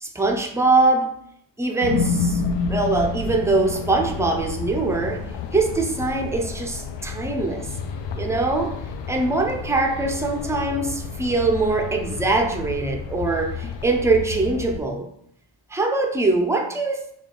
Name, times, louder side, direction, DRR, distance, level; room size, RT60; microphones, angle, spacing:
voice 1, 0.0-1.2 1.6-2.4 2.7-7.7 8.2-8.8 9.1-15.1 15.7-17.1, right 3 dB, 5° right, 0.5 m, -22 dB
sound 1, 1.8-14.8, left 5 dB, 65° left, 0.5 m, -30 dB
3.6 x 2.3 x 3.8 m
cardioid pair, 75°, 49 cm